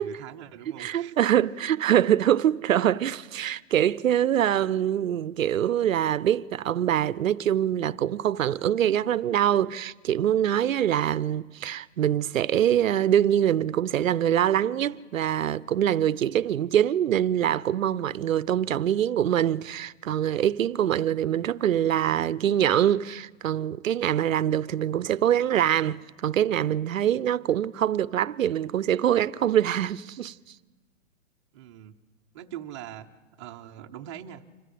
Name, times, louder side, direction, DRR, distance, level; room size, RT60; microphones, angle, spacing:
voice 1, 0.0-1.1 31.5-32.0 32.3-33.1 33.4-34.4, right 11 dB, 25° right, 0.7 m, -42 dB
voice 2, 0.8-30.3, right 10 dB, 85° right, 0.7 m, -24 dB
26.0 x 15.5 x 8.4 m
hypercardioid pair, 160°, 39 cm